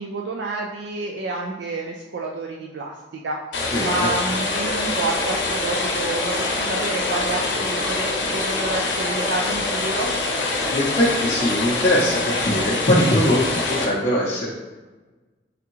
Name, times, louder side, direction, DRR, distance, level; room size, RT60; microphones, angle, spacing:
voice 1, 0.0-3.4 3.8-10.1, right 2 dB, 70° right, 0 dB, 0.4 m, -29 dB
sound 1, 3.5-13.9, left 2 dB, 80° left, 0.7 m, -25 dB
voice 2, 3.7-4.1 10.7-14.5, left 1 dB, 40° left, -6 dB, 0.6 m, -21 dB
3.5 x 3.4 x 3.0 m, 1.2 s
head